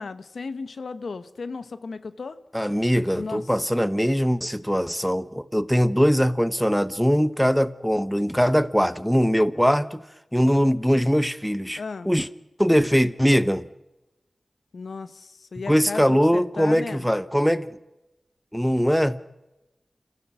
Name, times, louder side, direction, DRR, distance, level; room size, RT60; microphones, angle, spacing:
voice 1, 0.0-2.4 3.1-3.4 11.7-12.1 14.7-17.1, left 4 dB, 80° left, 0.9 m, -35 dB
voice 2, 2.5-10.0 10.3-11.8 12.0-12.3 12.6-13.7 15.7-17.7 18.5-19.2, equal, ahead, 0.9 m, -21 dB
29.0 x 15.5 x 6.1 m
wide cardioid pair, 55°, 0 cm